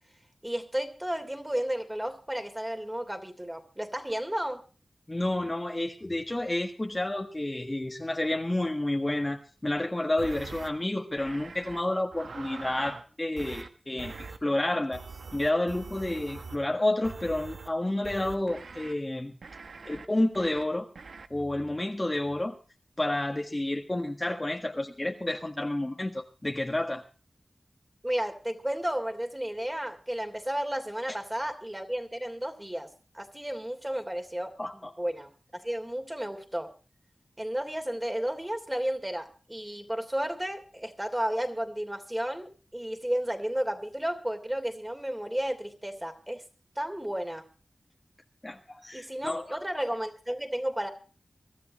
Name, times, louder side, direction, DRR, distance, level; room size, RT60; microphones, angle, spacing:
voice 1, 0.4-4.6 28.0-32.9 33.1-36.7 37.4-46.4 46.7-47.4 48.9-50.9, right 1 dB, 15° right, 6 dB, 3.0 m, -33 dB
voice 2, 5.1-14.1 14.4-15.0 15.3-19.3 19.8-20.9 21.3-22.6 23.0-27.0 34.6-34.9 48.4-49.6, left 1 dB, 25° left, 3 dB, 1.6 m, -30 dB
sound 1, 10.2-10.7 11.2-11.8 12.1-13.0 13.4-13.7 14.0-14.4 14.9-16.6 17.0-17.7 18.0-18.9 19.4-20.1 20.3-20.6 21.0-21.3, right 4 dB, 85° right, 1.1 m, -43 dB
24.0 x 13.0 x 3.1 m, 0.36 s
wide cardioid pair, 55°, 0 cm